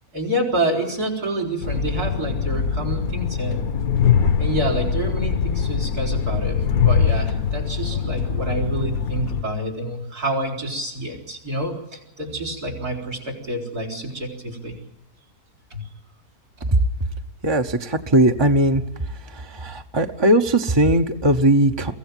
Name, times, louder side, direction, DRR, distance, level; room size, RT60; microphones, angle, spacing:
voice 1, 0.1-3.7 4.4-14.8 15.7-15.8 16.6-16.7, right 1 dB, 80° right, 4 dB, 5.0 m, -28 dB
Train, 1.6-9.4, left 7 dB, 70° left, 1.5 m, -22 dB
voice 2, 17.4-18.8 19.6-21.9, right 1 dB, 20° right, 5 dB, 0.8 m, -18 dB
23.5 x 15.5 x 9.0 m, 0.95 s
omnidirectional pair, 1.6 m